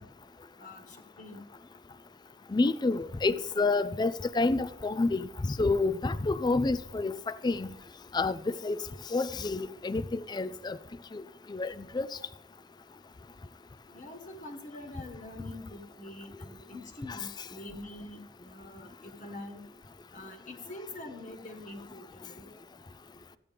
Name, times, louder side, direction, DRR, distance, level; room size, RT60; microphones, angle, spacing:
voice 1, 0.6-1.5 13.9-19.6 20.1-22.5, left 2 dB, 45° left, 1.4 m, -45 dB
voice 2, 2.5-7.7 8.1-8.8 9.1-10.8 11.1-11.2 11.5-12.1 17.1-17.2, left 3 dB, 25° left, 0.4 m, -29 dB
14.0 x 9.1 x 3.4 m
head